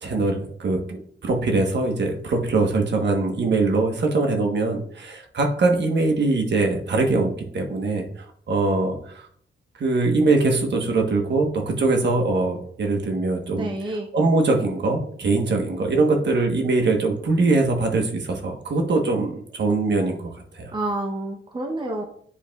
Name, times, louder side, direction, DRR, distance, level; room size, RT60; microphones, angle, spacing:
voice 1, 0.0-8.0 8.5-9.0 9.8-13.7 14.1-20.2 20.6-20.7, right 3 dB, 65° right, 2 dB, 1.1 m, -22 dB
voice 2, 13.6-14.1 20.7-22.0, right 1 dB, 25° right, 2 dB, 0.7 m, -28 dB
9.9 x 4.8 x 2.3 m, 0.63 s
wide cardioid pair, 160°, 20 cm